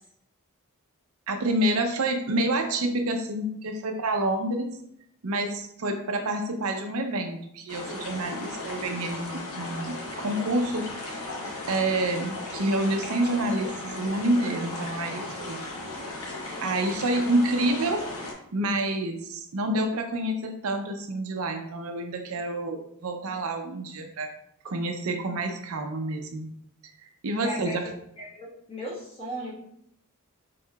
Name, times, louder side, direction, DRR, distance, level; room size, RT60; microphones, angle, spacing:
voice 1, 1.3-4.7 5.2-11.2 11.7-15.6 16.6-18.0 18.5-24.3 24.6-26.5 26.8-26.9 27.2-27.8, right 1 dB, 65° right, 5 dB, 0.6 m, -28 dB
sound 1, 7.7-18.3, left 2 dB, 70° left, 1.1 m, -36 dB
voice 2, 27.4-27.9 28.2-29.6, equal, 25° left, -5 dB, 1.5 m, -37 dB
4.5 x 4.2 x 2.3 m, 0.75 s
head